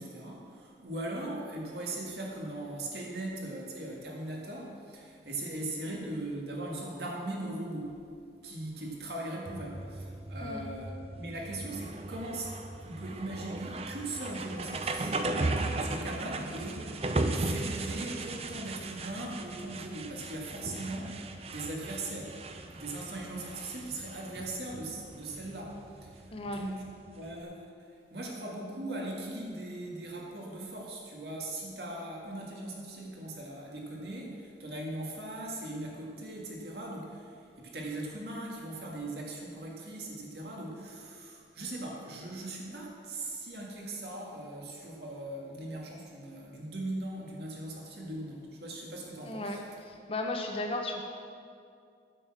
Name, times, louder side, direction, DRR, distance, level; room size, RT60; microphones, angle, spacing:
voice 1, 0.0-8.0 8.4-17.0 17.3-21.2 21.5-22.4 22.7-26.8 27.1-49.6, right 1 dB, 70° right, -2 dB, 2.0 m, -39 dB
sound 1, 9.5-27.4, right 2 dB, 35° right, 0.5 m, -37 dB
voice 2, 26.3-26.6 49.2-49.6 50.1-51.0, left 2 dB, 30° left, 3 dB, 1.0 m, -34 dB
9.1 x 6.4 x 7.4 m, 2.3 s
head